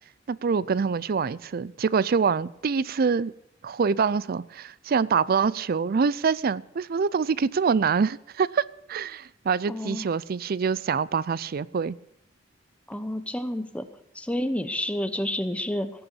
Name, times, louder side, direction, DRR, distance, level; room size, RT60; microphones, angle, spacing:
voice 1, 0.3-3.3 3.6-12.0, right 5 dB, 50° right, 0.4 m, -25 dB
voice 2, 9.7-10.1 12.9-13.9 14.1-15.9, left 1 dB, 5° left, 0.9 m, -29 dB
17.0 x 7.0 x 8.3 m
head